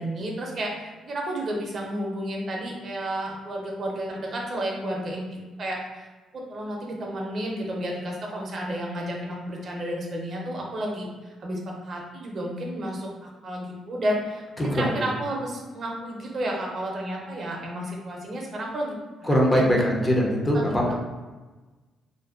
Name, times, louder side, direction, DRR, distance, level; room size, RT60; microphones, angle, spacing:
voice 1, 0.0-5.3 5.6-6.1 6.3-19.7 20.5-20.9, right 1 dB, 50° right, -1 dB, 0.5 m, -32 dB
voice 2, 14.6-15.1 19.2-20.9, equal, 20° left, -2 dB, 0.5 m, -22 dB
2.5 x 2.2 x 2.4 m, 1.2 s
cardioid pair, 90°, 0 cm